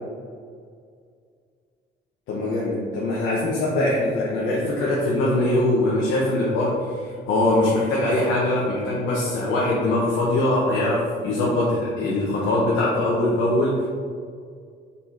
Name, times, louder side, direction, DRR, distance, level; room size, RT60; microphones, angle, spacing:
voice 1, 2.3-13.9, left 1 dB, 85° left, -5 dB, 1.1 m, -22 dB
5.4 x 4.2 x 4.4 m, 2.1 s
cardioid pair, 90°, 20 cm